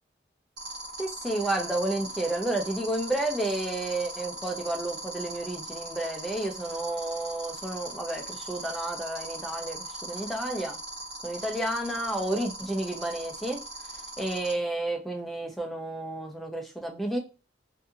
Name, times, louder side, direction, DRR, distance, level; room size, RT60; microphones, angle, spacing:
sound 1, 0.6-14.5, right 2 dB, 65° right, 1.1 m, -39 dB
voice 1, 1.0-10.8 11.2-13.6 14.2-17.2, right 1 dB, ahead, 2 dB, 0.5 m, -31 dB
2.7 x 2.6 x 2.3 m, 0.31 s
head